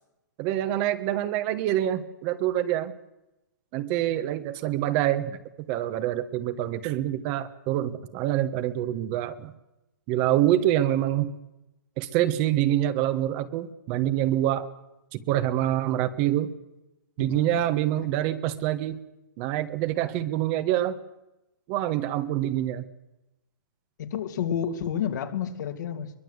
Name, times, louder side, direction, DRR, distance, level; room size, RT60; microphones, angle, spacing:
voice 1, 0.4-2.9 3.7-5.4 5.7-9.5 10.1-11.4 12.0-14.6 15.1-16.5 17.2-19.0 19.4-20.9 21.7-22.8, right 13 dB, 35° right, 10 dB, 1.4 m, -26 dB
voice 2, 17.2-17.7 18.0-18.3 24.0-26.1, left 8 dB, 60° left, 5 dB, 2.7 m, -31 dB
22.5 x 22.0 x 8.0 m, 0.96 s
hypercardioid pair, 150°, 11 cm